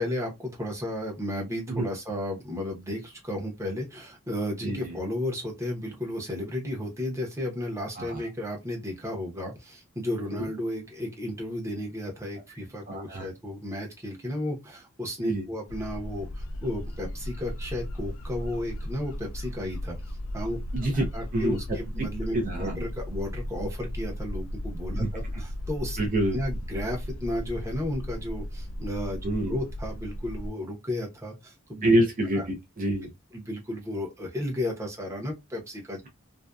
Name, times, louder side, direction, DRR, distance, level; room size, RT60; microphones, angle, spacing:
voice 1, 0.0-20.0 20.3-20.6 20.9-26.0 26.3-31.9 32.3-32.5 33.3-36.0, left 1 dB, 15° right, 0.8 m, -33 dB
voice 2, 4.6-5.0 7.9-8.2 10.3-10.4 12.9-13.3 15.2-15.5 20.7-21.6 22.0-22.1 22.3-22.8 24.9-25.1 26.0-26.4 29.2-29.6 31.8-33.1, right 1 dB, 40° right, 0.5 m, -27 dB
sound 1, 15.7-30.5, equal, 75° left, 0.4 m, -36 dB
2.6 x 2.2 x 2.3 m
head